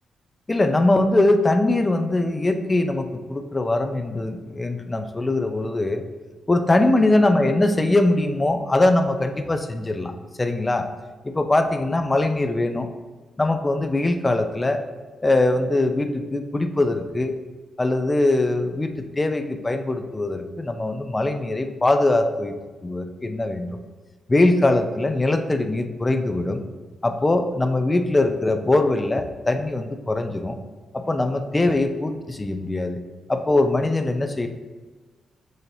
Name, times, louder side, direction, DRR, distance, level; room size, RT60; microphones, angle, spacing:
voice 1, 0.5-6.0 6.5-10.1 10.4-10.9 11.2-12.9 13.4-14.8 15.2-17.4 17.8-22.5 22.8-23.8 24.3-26.7 27.0-30.6 30.9-33.0 33.3-34.5, left 2 dB, 20° left, 7 dB, 0.4 m, -22 dB
6.3 x 2.8 x 2.6 m, 1.3 s
cardioid pair, 85°, 0 cm